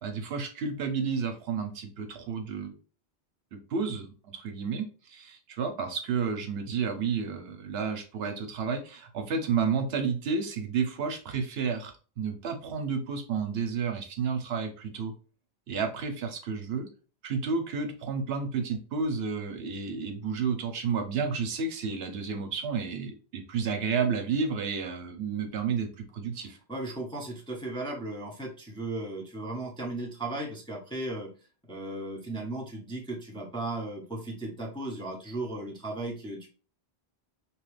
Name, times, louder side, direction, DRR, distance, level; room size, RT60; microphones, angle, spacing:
voice 1, 0.0-2.7 3.5-15.1 15.7-16.9 17.2-26.6, right 5 dB, 75° right, 5 dB, 0.9 m, -31 dB
voice 2, 26.4-31.3 31.7-36.5, right 2 dB, 5° left, -1 dB, 0.5 m, -36 dB
2.9 x 2.4 x 3.1 m, 0.36 s
omnidirectional pair, 1.1 m